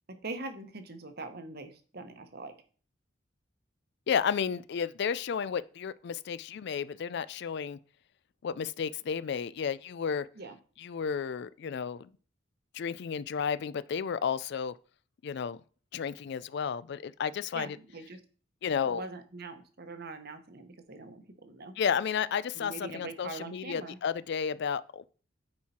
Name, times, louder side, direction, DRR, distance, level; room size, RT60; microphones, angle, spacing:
voice 1, 0.1-2.5 10.3-10.6 17.5-18.2 18.8-21.7 22.5-24.0, right 3 dB, 55° right, 1.1 m, -42 dB
voice 2, 4.1-7.8 8.4-10.3 10.8-12.1 12.7-14.7 15.2-15.6 15.9-17.8 18.6-19.0 21.8-25.1, left 7 dB, 60° left, 0.4 m, -32 dB
9.5 x 4.6 x 4.3 m
head